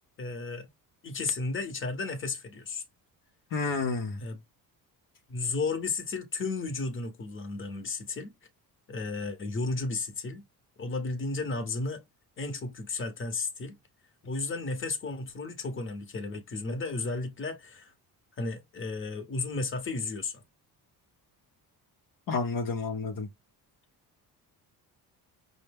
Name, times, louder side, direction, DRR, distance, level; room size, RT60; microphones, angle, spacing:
voice 1, 0.2-0.7 1.0-2.8 4.2-4.4 5.3-8.3 8.9-10.4 10.8-12.0 12.4-13.8 14.2-17.9 18.4-20.4, left 3 dB, 30° left, 1.0 m, -33 dB
voice 2, 3.5-4.2 22.3-23.3, left 4 dB, 55° left, 0.8 m, -30 dB
5.4 x 2.1 x 3.4 m
cardioid pair, 150°, 39 cm